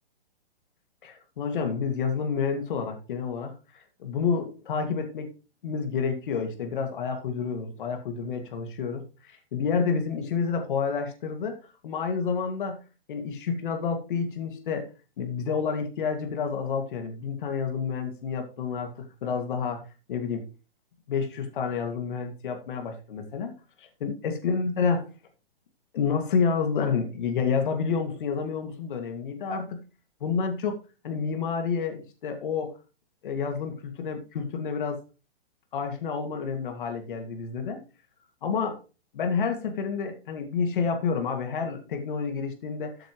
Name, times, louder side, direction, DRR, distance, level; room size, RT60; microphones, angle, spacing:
voice 1, 1.0-5.3 5.6-11.6 11.8-12.8 13.1-14.9 15.2-18.9 19.2-19.8 20.1-20.4 21.1-23.5 23.8-25.1 25.9-29.8 30.2-30.8 31.0-32.7 33.2-35.0 35.7-37.8 38.4-38.8 39.1-43.1, left 5 dB, 55° left, 5 dB, 2.2 m, -29 dB
13.0 x 8.8 x 3.1 m, 0.31 s
hypercardioid pair, 165°, 30 cm